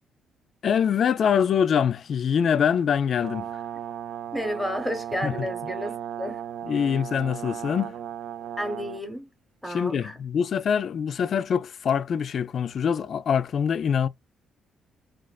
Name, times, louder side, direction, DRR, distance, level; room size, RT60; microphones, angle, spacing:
voice 1, 0.6-3.6 5.2-5.3 6.6-7.9 9.7-14.1, left 7 dB, 60° left, 0.3 m, -24 dB
Brass instrument, 3.2-9.0, right 10 dB, 80° right, 0.3 m, -36 dB
voice 2, 4.3-6.4 8.6-9.3 9.6-10.2, equal, ahead, 0.9 m, -31 dB
2.4 x 2.3 x 2.2 m
cardioid pair, 90°, 0 cm